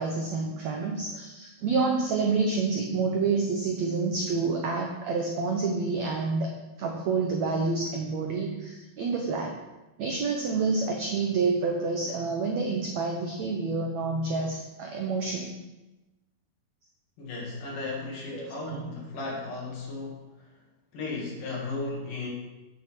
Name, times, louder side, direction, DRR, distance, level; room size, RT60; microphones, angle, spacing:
voice 1, 0.0-9.5 10.0-15.5 18.3-18.8, right 4 dB, 90° right, 1 dB, 1.5 m, -28 dB
voice 2, 17.2-20.5 20.9-22.3, left 3 dB, 60° left, -3 dB, 3.6 m, -35 dB
9.0 x 9.0 x 4.6 m, 1.1 s
omnidirectional pair, 4.6 m